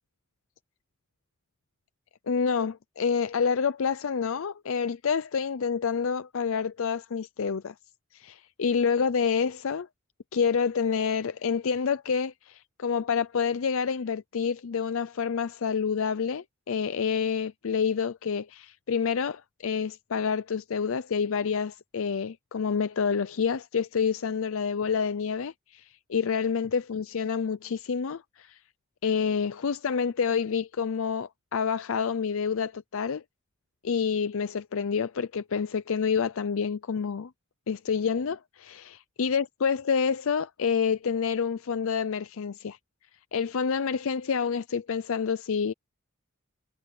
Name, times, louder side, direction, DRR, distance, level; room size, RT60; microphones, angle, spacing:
voice 1, 2.3-7.7 8.1-9.9 10.3-28.6 29.0-33.2 33.8-37.3 37.7-42.8 43.3-45.7, left 6 dB, 70° left, 0.5 m, -28 dB
head